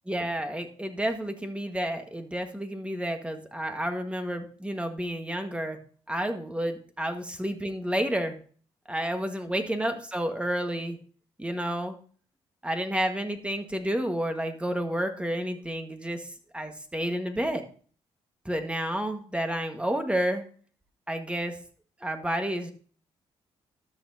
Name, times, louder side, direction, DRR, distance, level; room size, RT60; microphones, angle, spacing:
voice 1, 0.1-5.8 6.1-8.4 8.9-11.0 11.4-12.0 12.6-16.3 16.5-17.6 18.4-20.4 21.1-21.5 22.0-22.7, right 1 dB, 10° right, 6 dB, 1.6 m, -30 dB
13.0 x 6.1 x 2.8 m, 0.43 s
supercardioid pair, 50°, 12 cm